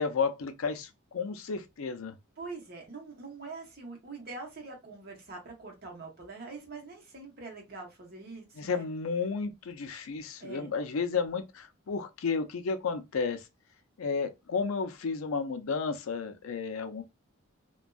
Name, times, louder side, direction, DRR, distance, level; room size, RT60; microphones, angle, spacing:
voice 1, 0.0-2.1 8.6-13.4 14.0-17.0, left 5 dB, 85° left, 0.5 m, -32 dB
voice 2, 2.4-8.9 10.4-10.7, right 3 dB, 45° right, 0.9 m, -44 dB
2.6 x 2.3 x 2.3 m
head